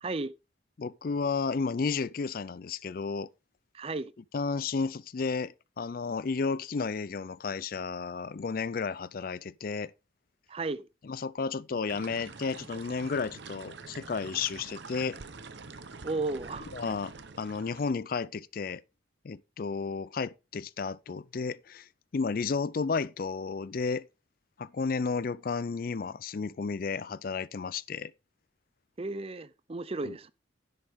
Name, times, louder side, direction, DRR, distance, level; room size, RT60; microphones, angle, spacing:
voice 1, 0.0-0.3 3.7-4.1 10.5-10.9 16.0-16.7 29.0-30.3, right 3 dB, 30° right, 0.5 m, -34 dB
voice 2, 0.8-3.3 4.3-9.9 11.1-15.2 16.7-18.8 19.2-21.9 22.1-24.1 24.6-28.1 30.0-30.1, left 4 dB, 50° left, 0.4 m, -32 dB
sound 1, 11.9-17.9, right 4 dB, 65° right, 1.0 m, -46 dB
10.5 x 7.9 x 3.6 m
head